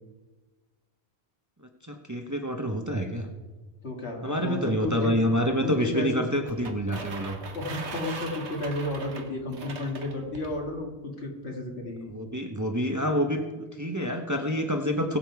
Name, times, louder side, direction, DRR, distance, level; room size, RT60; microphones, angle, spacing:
voice 1, 1.8-3.3 4.2-7.4 12.1-15.2, equal, 15° right, 4 dB, 0.9 m, -27 dB
voice 2, 3.8-5.1 5.6-6.2 7.5-12.1, left 1 dB, 75° left, 0 dB, 2.5 m, -32 dB
sound 1, 6.5-10.6, right 4 dB, 90° right, 1.6 m, -40 dB
21.0 x 7.6 x 4.8 m, 1.3 s
omnidirectional pair, 1.1 m